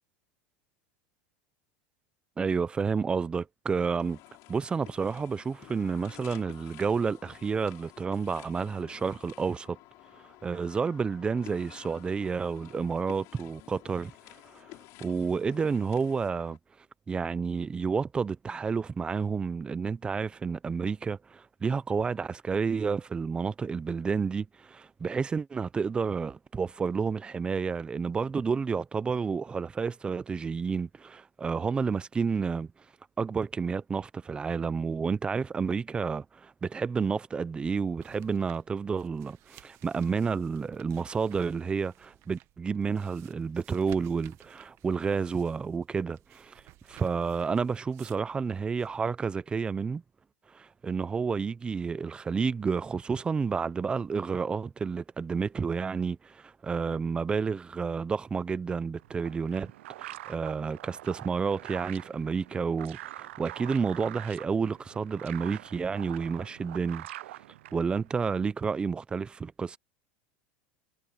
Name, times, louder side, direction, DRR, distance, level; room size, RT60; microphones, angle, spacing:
voice 1, 2.4-4.2 4.5-9.8 10.4-14.1 14.5-14.7 15.0-16.6 17.1-32.7 33.2-46.5 46.9-50.0 50.5-59.7 60.0-67.1 67.7-69.8, right 5 dB, 15° right, 0.5 m, -30 dB
sound 1, 4.0-16.6, left 21 dB, 50° left, 5.6 m, -52 dB
sound 2, 38.0-49.0, right 17 dB, 45° right, 1.4 m, -57 dB
sound 3, 59.0-68.2, right 15 dB, 90° right, 0.4 m, -45 dB
supercardioid pair, 140°, 6 cm